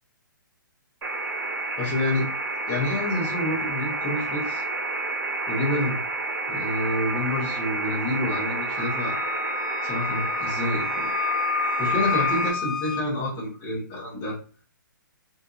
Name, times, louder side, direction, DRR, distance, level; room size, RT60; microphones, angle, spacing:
sound 1, 1.0-12.5, right 3 dB, 80° right, 0.8 m, -29 dB
voice 1, 1.8-2.3 2.7-4.6 5.5-5.9 6.5-9.2 9.8-11.1 11.8-14.4, left 1 dB, 20° left, -6 dB, 1.0 m, -28 dB
Wind instrument woodwind instrument, 8.8-13.1, left 7 dB, 75° left, 0.5 m, -29 dB
2.6 x 2.6 x 2.3 m, 0.37 s
hypercardioid pair, 155°, 11 cm